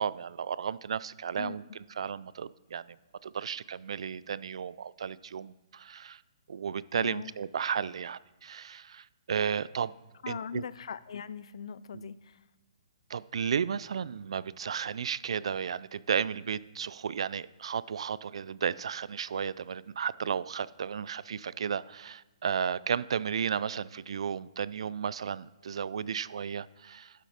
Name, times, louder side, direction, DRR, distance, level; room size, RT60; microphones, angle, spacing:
voice 1, 0.0-1.6 2.0-2.8 3.2-6.2 6.5-9.9 10.3-10.6 11.9-12.1 13.1-27.1, right 7 dB, 65° right, 19 dB, 0.3 m, -33 dB
voice 2, 7.0-7.3 10.2-12.4, left 7 dB, 65° left, 17 dB, 0.4 m, -40 dB
11.5 x 6.5 x 4.2 m, 1.2 s
hypercardioid pair, 160°, 3 cm